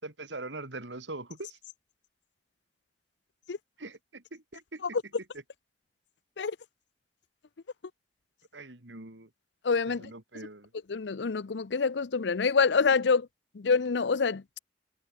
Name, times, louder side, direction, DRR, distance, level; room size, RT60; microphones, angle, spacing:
voice 1, 0.0-1.6 3.8-5.0 8.5-9.3 9.9-10.7, right 2 dB, 80° right, 2.9 m, -42 dB
voice 2, 9.6-10.1 10.9-13.3 13.5-14.4, left 5 dB, 70° left, 0.6 m, -26 dB
head